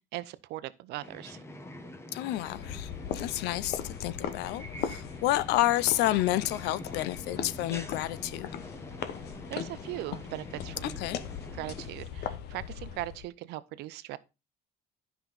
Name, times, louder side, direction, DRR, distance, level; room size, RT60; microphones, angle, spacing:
voice 1, 0.1-1.4 9.5-11.0 11.5-14.2, right 16 dB, 85° right, 0.6 m, -39 dB
sound 1, 1.0-11.9, left 1 dB, 15° left, 1.1 m, -45 dB
voice 2, 2.1-2.9 3.2-8.5 10.8-11.2, left 15 dB, 90° left, 0.5 m, -30 dB
sound 2, 2.4-13.3, left 9 dB, 70° left, 1.0 m, -39 dB
10.5 x 5.7 x 4.0 m
cardioid pair, 110°, 17 cm